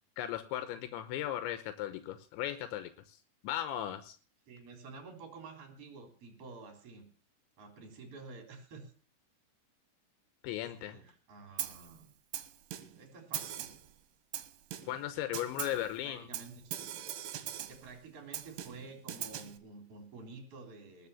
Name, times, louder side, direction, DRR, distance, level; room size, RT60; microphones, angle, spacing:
voice 1, 0.2-3.2 3.4-4.2 10.4-11.0 14.8-16.3, left 12 dB, 85° left, 10 dB, 3.2 m, -37 dB
voice 2, 4.5-7.1 7.6-8.9 10.8-12.1 13.0-13.7 15.8-16.7 17.7-21.1, right 4 dB, 35° right, 4 dB, 4.1 m, -50 dB
Snare drum, 11.6-11.9 12.3-13.0 13.3-13.9 14.3-15.0 15.3-15.9 16.3-17.9 18.3-19.6, right 11 dB, 70° right, 3.2 m, -41 dB
20.0 x 6.9 x 7.0 m, 0.41 s
omnidirectional pair, 5.3 m